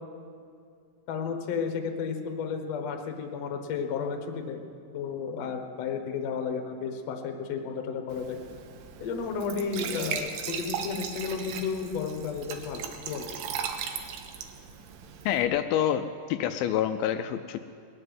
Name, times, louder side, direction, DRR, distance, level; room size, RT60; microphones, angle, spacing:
voice 1, 1.1-4.6 4.9-8.4 9.0-13.3, left 6 dB, 60° left, 5 dB, 1.8 m, -32 dB
Glass / Trickle dribble / Fill (with liquid), 8.1-15.5, right 7 dB, 80° right, 2.8 m, -37 dB
voice 2, 15.3-17.6, left 10 dB, 85° left, 8 dB, 2.3 m, -27 dB
20.0 x 7.6 x 9.4 m, 2.4 s
omnidirectional pair, 4.4 m